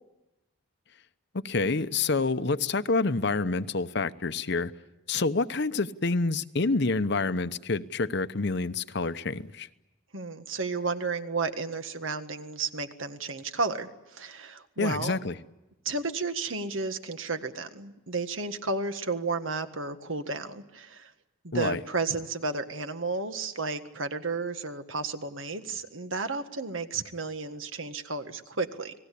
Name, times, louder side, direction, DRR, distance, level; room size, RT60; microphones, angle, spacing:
voice 1, 1.3-4.7 5.1-9.7 14.8-15.4 21.5-21.8, left 3 dB, 55° left, 0.9 m, -27 dB
voice 2, 10.1-15.2 15.8-21.1 21.4-28.9, right 3 dB, 75° right, 1.7 m, -32 dB
30.0 x 19.5 x 8.5 m
head